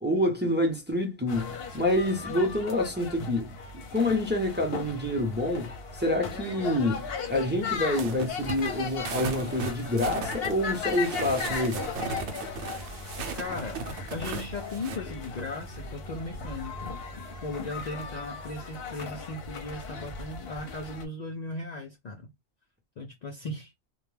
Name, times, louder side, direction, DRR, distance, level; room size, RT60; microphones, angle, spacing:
voice 1, 0.0-3.6 3.9-11.9, left 1 dB, 15° right, 0.5 m, -27 dB
sound 1, 1.3-21.1, left 5 dB, 60° left, 0.8 m, -37 dB
sound 2, 7.7-15.0, right 4 dB, 70° right, 0.8 m, -37 dB
voice 2, 13.2-13.8 14.1-16.7 17.4-22.3 23.0-23.7, left 2 dB, 85° left, 0.3 m, -37 dB
2.2 x 2.2 x 3.1 m
omnidirectional pair, 1.3 m